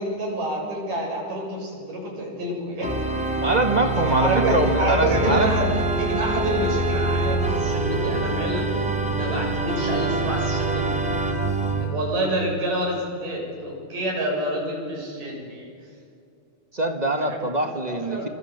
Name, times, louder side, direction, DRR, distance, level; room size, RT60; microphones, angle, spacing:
voice 1, 0.0-3.0 4.1-10.9 11.8-15.7 17.2-17.4 17.9-18.3, right 1 dB, 85° right, -1 dB, 9.3 m, -28 dB
Organ, 2.8-11.9, right 2 dB, ahead, 2.9 m, -25 dB
voice 2, 3.4-5.5 16.7-18.3, right 2 dB, 20° right, 5 dB, 1.1 m, -23 dB
27.0 x 26.5 x 8.3 m, 2.3 s
omnidirectional pair, 3.7 m